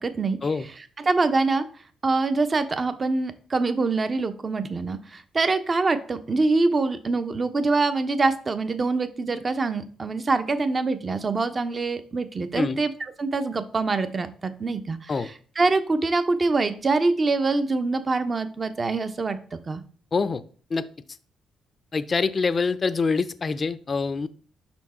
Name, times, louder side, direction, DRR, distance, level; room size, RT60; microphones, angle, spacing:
voice 1, 0.0-1.6 2.0-12.9 13.2-19.8, right 3 dB, 35° right, 10 dB, 0.7 m, -25 dB
voice 2, 20.1-20.4 20.7-20.8 21.9-24.3, left 4 dB, 35° left, 13 dB, 0.5 m, -25 dB
5.5 x 4.5 x 4.2 m, 0.43 s
cardioid pair, 90°, 0 cm